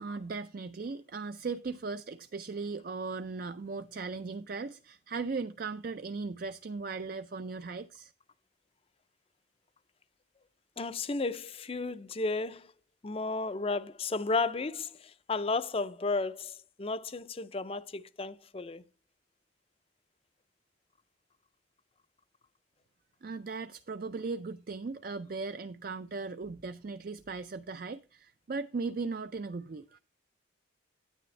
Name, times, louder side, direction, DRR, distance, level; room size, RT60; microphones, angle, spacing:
voice 1, 0.0-8.1 23.2-30.0, right 4 dB, 45° right, 0.4 m, -38 dB
voice 2, 10.8-12.7 13.0-18.8, left 3 dB, 30° left, 0.5 m, -33 dB
9.6 x 9.3 x 3.2 m
head